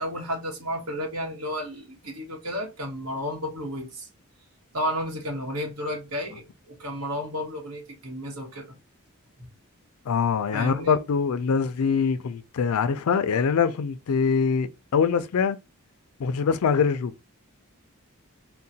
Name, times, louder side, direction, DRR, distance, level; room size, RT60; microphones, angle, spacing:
voice 1, 0.0-4.1 4.7-8.6 9.4-9.5 10.5-11.0, equal, 85° right, 1.1 m, -32 dB
voice 2, 10.1-15.6 16.2-17.1, left 6 dB, 85° left, 0.4 m, -23 dB
3.7 x 2.1 x 2.7 m
head